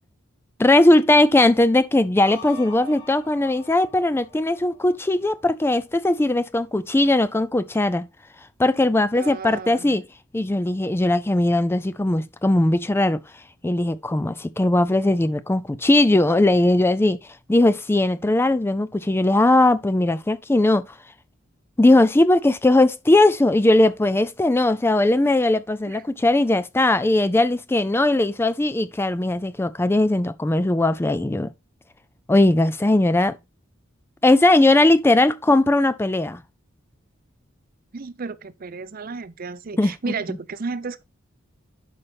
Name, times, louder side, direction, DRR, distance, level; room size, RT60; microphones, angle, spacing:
voice 1, 0.6-8.1 8.6-10.0 10.3-13.2 13.6-17.2 17.5-20.8 21.8-31.5 32.3-33.4 34.2-36.4 39.8-39.9, left 2 dB, 10° left, 0.4 m, -19 dB
sound 1, 2.2-5.3, left 1 dB, 55° left, 4.7 m, -43 dB
voice 2, 9.1-10.0 25.9-26.0 37.9-41.0, right 4 dB, 45° right, 0.6 m, -33 dB
11.0 x 5.5 x 3.4 m
head